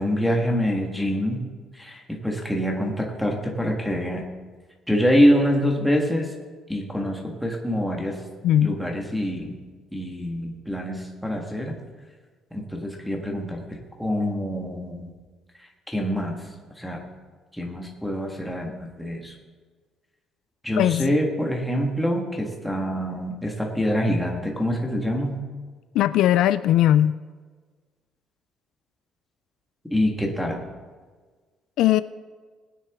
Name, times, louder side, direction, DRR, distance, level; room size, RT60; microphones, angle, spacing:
voice 1, 0.0-1.4 1.7-4.2 4.9-6.3 6.7-8.2 8.6-9.5 9.9-11.7 12.5-13.6 14.0-15.1 15.9-16.3 16.8-17.1 17.5-19.3 20.6-25.4 29.9-30.6, equal, ahead, -1 dB, 1.6 m, -25 dB
voice 2, 8.4-8.8 20.8-21.1 25.9-27.1 31.8-32.0, left 12 dB, 75° left, 14 dB, 0.3 m, -19 dB
19.0 x 10.0 x 3.6 m, 1.4 s
cardioid pair, 180°, 0 cm